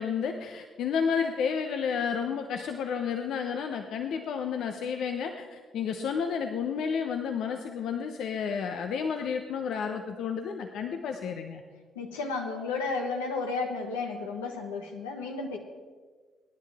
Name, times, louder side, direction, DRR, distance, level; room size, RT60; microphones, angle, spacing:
voice 1, 0.0-11.6, left 6 dB, 70° left, 5 dB, 0.9 m, -31 dB
voice 2, 11.9-15.6, left 4 dB, 90° left, 2 dB, 1.4 m, -33 dB
24.0 x 10.0 x 3.6 m, 1.5 s
hypercardioid pair, 50°, 0 cm